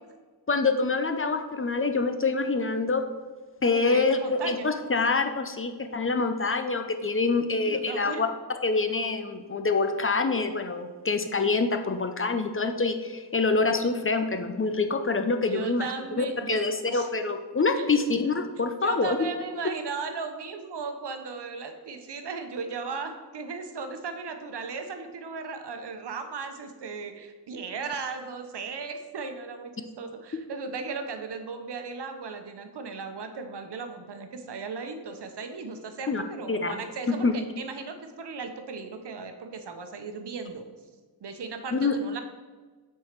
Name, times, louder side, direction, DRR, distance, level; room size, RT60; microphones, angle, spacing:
voice 1, 0.5-3.0 3.6-8.3 8.6-15.9 16.2-19.2 36.1-36.2 36.5-36.8 37.1-37.3 41.7-41.9, left 3 dB, 30° left, 7 dB, 0.6 m, -26 dB
voice 2, 3.7-4.7 7.6-8.2 15.5-16.6 16.9-17.1 17.7-18.1 18.8-40.6 41.2-42.2, right 4 dB, 70° right, 6 dB, 0.9 m, -36 dB
6.3 x 4.6 x 6.6 m, 1.3 s
wide cardioid pair, 80°, 42 cm